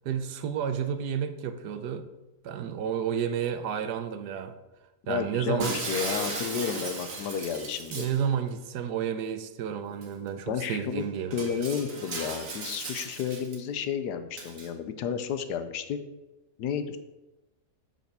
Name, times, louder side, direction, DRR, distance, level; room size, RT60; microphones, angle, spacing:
voice 1, 0.0-2.1 2.4-4.5 5.1-5.8 7.9-11.4, right 8 dB, 85° right, 1.3 m, -31 dB
voice 2, 5.1-8.1 10.5-11.0 11.3-16.0 16.6-17.0, left 7 dB, 85° left, 1.3 m, -32 dB
Shatter, 5.6-8.2 10.0-10.1 10.6-10.7 11.3-13.6 14.4-14.7, right 3 dB, 55° right, 1.9 m, -36 dB
7.6 x 5.3 x 6.7 m
omnidirectional pair, 1.7 m